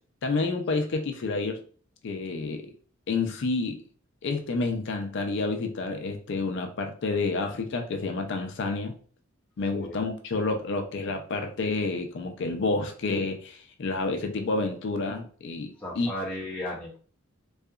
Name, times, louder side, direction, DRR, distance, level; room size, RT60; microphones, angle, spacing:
voice 1, 0.2-1.6 2.0-2.7 3.1-3.8 4.2-9.0 9.6-16.1, left 3 dB, 60° left, 6 dB, 0.4 m, -29 dB
voice 2, 15.8-17.0, left 1 dB, 10° left, -6 dB, 0.5 m, -35 dB
2.7 x 2.3 x 2.3 m, 0.42 s
head